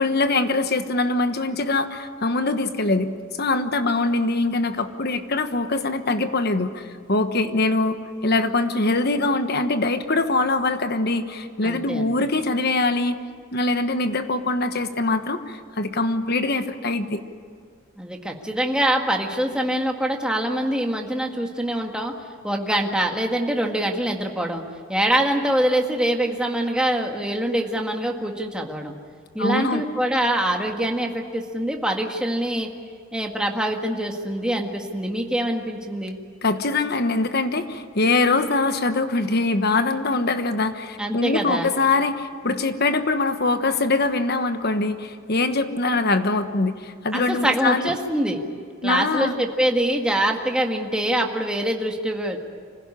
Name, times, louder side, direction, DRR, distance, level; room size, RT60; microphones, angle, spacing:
voice 1, 0.0-13.2 13.5-17.2 29.4-29.8 36.4-47.9 48.8-49.3, left 2 dB, 50° left, 9 dB, 1.2 m, -23 dB
voice 2, 11.6-12.1 18.0-22.1 22.4-24.6 24.9-28.9 29.3-32.7 33.1-36.2 41.0-41.7 47.1-48.4 48.8-52.4, right 1 dB, 5° right, 1 dB, 1.7 m, -24 dB
25.5 x 16.5 x 9.9 m, 2.1 s
head